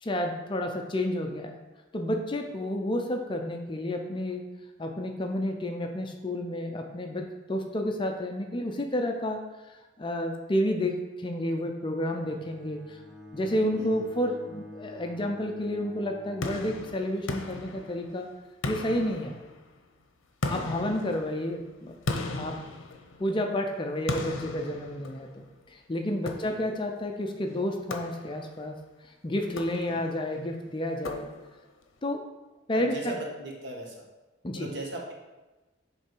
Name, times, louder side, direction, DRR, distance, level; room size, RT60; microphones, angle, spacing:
voice 1, 0.0-1.6 1.9-4.4 4.8-9.4 9.7-13.0 13.3-18.3 18.7-19.4 20.5-21.9 22.3-22.6 23.2-28.8 29.2-31.3 32.0-32.2 32.7-33.2 34.4-34.7, left 1 dB, 25° left, 4 dB, 0.5 m, -30 dB
Bowed string instrument, 12.1-17.0, left 1 dB, ahead, 0.8 m, -48 dB
sound 1, 16.4-18.2 18.6-19.8 20.4-23.4 24.1-25.5 26.3-26.9 27.9-28.6 29.4-30.2 31.0-31.7, left 2 dB, 75° left, 0.7 m, -37 dB
voice 2, 20.4-20.9 26.4-26.6 29.9-30.1 32.7-33.9 34.6-35.1, right 1 dB, 60° right, -1 dB, 1.3 m, -39 dB
7.8 x 3.3 x 4.5 m, 1.1 s
head